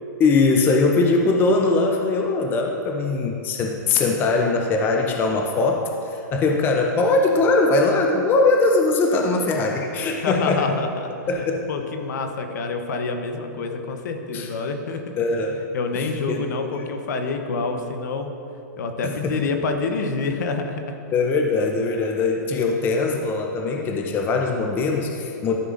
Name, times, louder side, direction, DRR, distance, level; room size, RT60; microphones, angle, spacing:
voice 1, 0.2-10.8 11.3-11.7 14.3-14.5 15.2-15.6 15.9-16.8 19.0-19.4 21.1-25.6, left 3 dB, 20° left, 2 dB, 0.5 m, -21 dB
voice 2, 10.2-15.2 15.7-18.3 18.8-20.9, left 4 dB, 65° left, 6 dB, 0.9 m, -27 dB
13.0 x 5.4 x 2.5 m, 2.7 s
hypercardioid pair, 145°, 10 cm